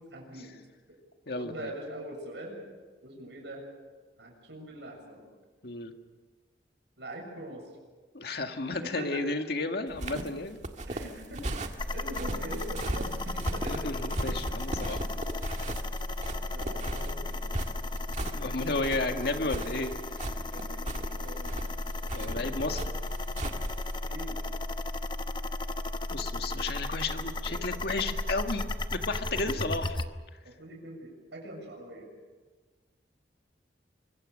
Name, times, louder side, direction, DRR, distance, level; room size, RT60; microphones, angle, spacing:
voice 1, 0.1-0.5 1.4-2.6 3.0-3.6 4.2-5.3 7.0-7.6 8.3-9.2 10.9-13.8 14.5-14.6 16.5-17.5 20.5-21.6 21.9-22.8 24.0-24.6 26.4-26.7 27.1-27.2 27.4-28.1 29.2-29.6 30.4-32.1, right 1 dB, 75° right, 2 dB, 7.0 m, -43 dB
voice 2, 1.3-1.7 5.6-5.9 8.1-10.6 13.7-15.0 18.2-19.9 20.2-20.4 22.1-22.9 26.1-30.0, left 3 dB, 65° left, 5 dB, 1.9 m, -33 dB
sound 1, 9.9-24.0, right 1 dB, 40° right, 1.7 m, -37 dB
sound 2, 11.8-30.1, left 2 dB, 25° left, 0.9 m, -35 dB
25.0 x 23.0 x 6.5 m, 1.4 s
head